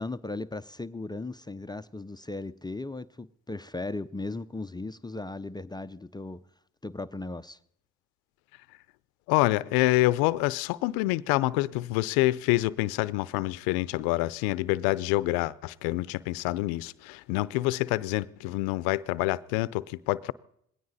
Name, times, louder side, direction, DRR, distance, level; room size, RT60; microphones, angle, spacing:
voice 1, 0.0-6.4 6.8-7.6, left 2 dB, 10° left, 0.6 m, -37 dB
voice 2, 9.3-20.3, left 19 dB, 85° left, 0.6 m, -27 dB
19.5 x 17.0 x 4.1 m
hypercardioid pair, 60°, 36 cm